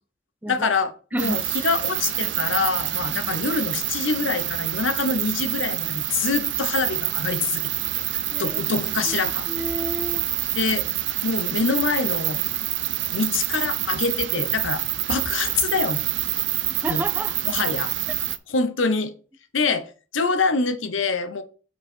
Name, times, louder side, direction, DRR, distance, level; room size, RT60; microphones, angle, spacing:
voice 1, 0.5-7.7 8.0-8.1 8.4-9.5 10.5-10.8 11.2-12.4 13.1-14.8 15.1-16.1 16.9-17.0 17.4-17.9 18.5-19.1 19.5-19.9 20.1-21.4, left 4 dB, 85° left, 0.9 m, -25 dB
sound 1, 1.2-18.4, right 14 dB, 65° right, 0.6 m, -27 dB
voice 2, 8.3-8.6 9.1-9.2 9.5-10.2 16.8-17.3, right 1 dB, 10° right, 0.4 m, -30 dB
8.2 x 4.8 x 4.4 m
head